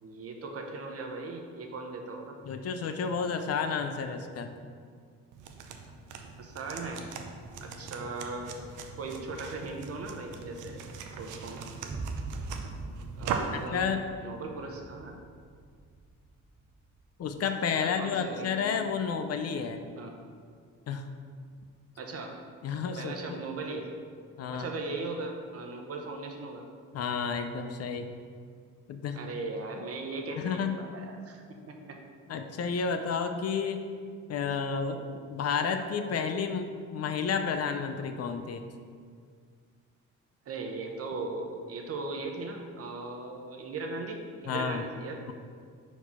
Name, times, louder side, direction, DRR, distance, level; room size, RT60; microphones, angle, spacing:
voice 1, 0.0-2.4 6.4-7.1 7.6-8.5 9.0-10.8 11.2-11.6 13.2-13.9 14.2-15.2 17.8-18.8 20.0-20.1 22.0-22.3 23.0-23.9 24.5-26.7 29.1-32.0 40.5-45.2, right 3 dB, 50° right, 3 dB, 0.9 m, -38 dB
voice 2, 2.4-4.5 13.5-14.1 17.2-19.8 20.9-21.1 22.6-23.4 24.4-24.7 26.9-28.1 28.9-29.2 30.4-30.8 32.3-33.8 34.3-38.6 44.5-44.8, left 6 dB, 55° left, 7 dB, 0.5 m, -31 dB
sound 1, 5.3-13.7, right 5 dB, 85° right, 0.6 m, -40 dB
sound 2, 11.9-19.3, right 3 dB, 20° right, 0.3 m, -43 dB
4.6 x 4.5 x 5.6 m, 2.1 s
cardioid pair, 90°, 30 cm